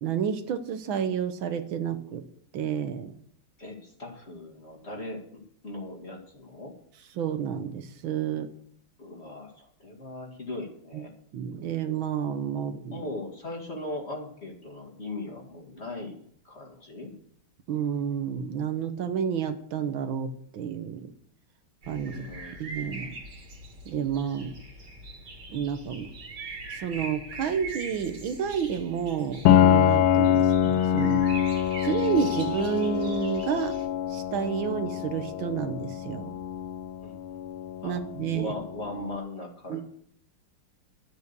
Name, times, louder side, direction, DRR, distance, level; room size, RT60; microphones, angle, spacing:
voice 1, 0.0-2.2 2.5-3.1 7.2-8.5 10.9-11.0 11.3-13.0 17.7-21.1 21.9-22.2 22.6-23.1 23.8-24.5 25.5-26.1 26.7-31.3 31.8-33.8 34.1-36.3 37.8-38.5 39.7-39.8, right 8 dB, 70° right, 9 dB, 1.7 m, -30 dB
voice 2, 3.6-6.7 9.0-11.1 12.5-17.1 22.1-22.6 37.0-37.2 37.8-38.0 38.3-39.8, left 2 dB, 30° left, 1 dB, 2.2 m, -39 dB
sound 1, 21.8-33.9, right 2 dB, 55° right, 2.8 m, -42 dB
Piano, 29.5-39.0, left 9 dB, 85° left, 1.6 m, -25 dB
12.5 x 8.1 x 6.7 m, 0.64 s
omnidirectional pair, 2.3 m